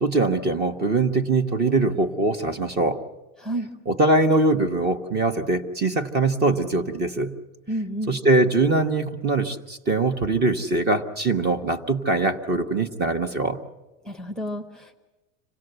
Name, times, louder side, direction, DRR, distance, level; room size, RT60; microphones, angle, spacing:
voice 1, 0.0-3.0 3.9-7.4 8.1-13.6, right 2 dB, 25° right, 9 dB, 1.1 m, -22 dB
voice 2, 3.4-3.7 7.7-8.1 14.0-15.0, right 1 dB, ahead, 5 dB, 0.8 m, -30 dB
26.5 x 17.0 x 8.0 m, 1.1 s
supercardioid pair, 145°, 39 cm